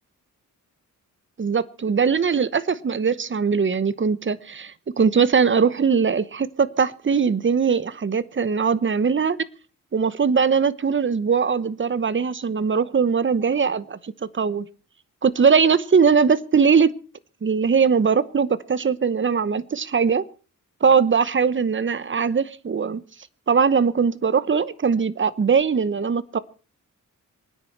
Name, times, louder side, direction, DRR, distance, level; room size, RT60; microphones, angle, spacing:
voice 1, 1.4-9.4 9.9-14.6 15.2-16.9 17.4-20.2 20.8-23.0 23.5-26.4, right 6 dB, 35° right, 16 dB, 0.9 m, -20 dB
26.5 x 9.8 x 4.6 m, 0.36 s
wide cardioid pair, 115°, 33 cm